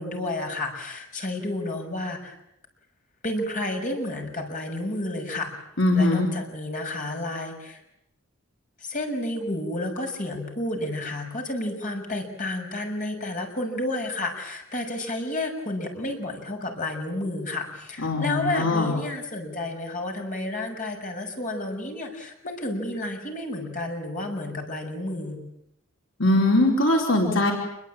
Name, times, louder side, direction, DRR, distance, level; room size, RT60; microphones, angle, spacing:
voice 1, 0.0-2.3 3.2-5.5 5.9-7.8 8.8-25.4, left 1 dB, 40° left, 3 dB, 6.6 m, -31 dB
voice 2, 5.8-6.3 18.0-19.0 26.2-27.5, left 2 dB, 60° left, 0 dB, 4.9 m, -21 dB
28.5 x 23.0 x 8.9 m, 0.82 s
head